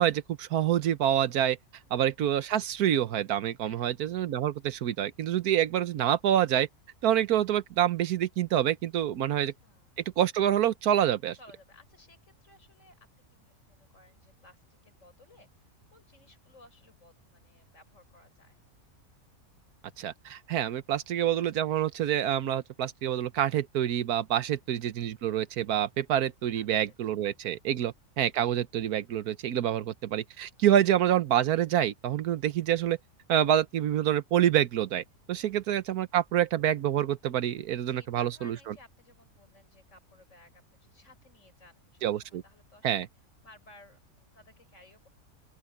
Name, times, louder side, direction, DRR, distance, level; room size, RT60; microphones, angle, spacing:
voice 1, 0.0-1.6 1.9-6.7 7.0-9.5 10.2-11.4 20.0-33.0 33.3-38.6 42.0-42.4 42.8-43.1, right 11 dB, 80° right, 1.4 m, -27 dB
voice 2, 1.8-2.1 3.6-3.9 9.6-10.0 11.3-18.6 24.4-24.7 26.5-27.2 35.3-35.6 37.9-43.1 43.4-45.1, left 2 dB, 55° left, 7.7 m, -58 dB
open air
omnidirectional pair, 1.6 m